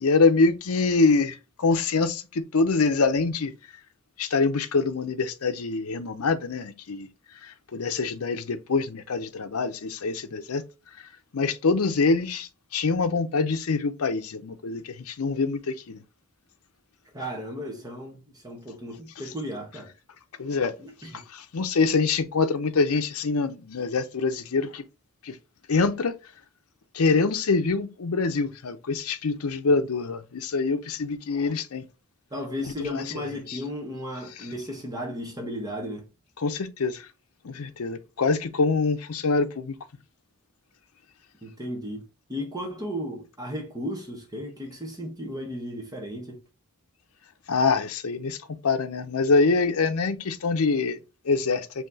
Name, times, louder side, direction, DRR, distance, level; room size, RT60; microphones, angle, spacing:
voice 1, 0.0-3.5 4.2-7.1 7.4-10.6 11.3-16.0 20.4-20.7 21.1-24.8 25.2-25.4 25.7-26.1 26.9-31.8 32.6-33.6 36.4-37.1 37.4-39.7 47.5-48.4 48.6-51.0 51.2-51.7, left 4 dB, 75° left, 0.6 m, -25 dB
voice 2, 17.1-19.9 20.8-21.1 32.3-36.1 41.4-42.0 42.3-46.4, equal, 15° right, 1.0 m, -34 dB
5.7 x 2.9 x 2.7 m
head